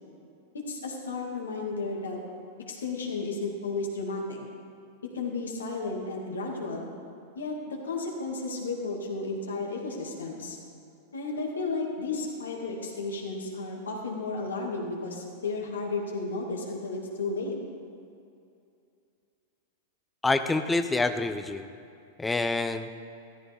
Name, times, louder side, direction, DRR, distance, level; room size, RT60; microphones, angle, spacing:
voice 1, 0.7-2.2 2.7-4.4 5.1-6.9 7.3-10.6 11.1-17.5, left 3 dB, 80° left, -1 dB, 2.3 m, -33 dB
voice 2, 20.2-21.6 22.2-22.9, left 3 dB, 10° left, 9 dB, 0.7 m, -27 dB
14.0 x 14.0 x 3.6 m, 2.6 s
hypercardioid pair, 100°, 0 cm